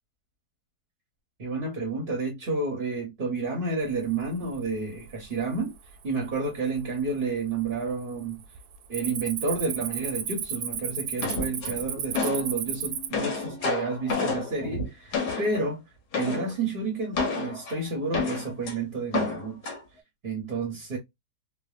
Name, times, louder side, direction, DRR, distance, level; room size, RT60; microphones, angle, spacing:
voice 1, 1.4-5.7 6.0-8.4 8.9-15.8 16.1-19.7 20.2-21.0, right 3 dB, 50° right, 0.7 m, -30 dB
Cricket, 4.1-4.6 5.0-5.4 6.0-6.1 6.7-7.4 7.6-7.9 8.2-13.1, right 8 dB, 75° right, 1.0 m, -33 dB
sound 1, 11.2-12.5 12.9-15.7 16.1-16.5 17.1-18.7 19.1-19.8, left 4 dB, 80° left, 1.4 m, -30 dB
3.2 x 2.1 x 2.2 m
omnidirectional pair, 1.7 m